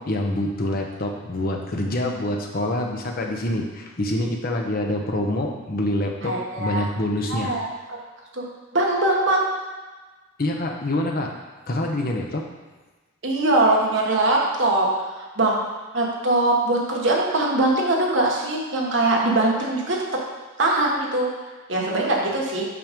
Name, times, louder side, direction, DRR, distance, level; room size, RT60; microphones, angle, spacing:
voice 1, 0.0-7.6 10.4-11.3 11.7-12.5, left 1 dB, 45° left, 1 dB, 0.9 m, -26 dB
voice 2, 6.2-6.8 7.3-8.0 8.3-8.4 8.7-9.4 13.2-14.9 15.1-15.6 15.9-20.0 20.6-21.3 21.7-22.7, right 2 dB, 60° right, -2 dB, 1.4 m, -22 dB
6.0 x 5.1 x 5.2 m, 1.3 s
head